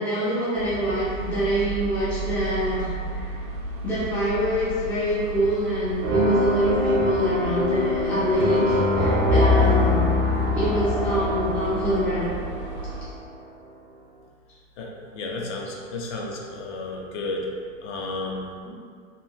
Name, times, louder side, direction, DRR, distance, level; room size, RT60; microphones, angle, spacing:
voice 1, 0.0-2.9 3.1-3.3 3.8-10.1 10.5-12.4, equal, 5° left, -11 dB, 0.3 m, -25 dB
sound 1, 0.6-13.1, right 2 dB, 50° right, 0.5 m, -33 dB
sound 2, 6.0-13.1, left 2 dB, 80° right, 0.8 m, -23 dB
voice 2, 14.8-17.5 17.8-18.5, left 2 dB, 60° left, -1 dB, 0.6 m, -32 dB
2.9 x 2.4 x 2.3 m, 2.1 s
hypercardioid pair, 115°, 40 cm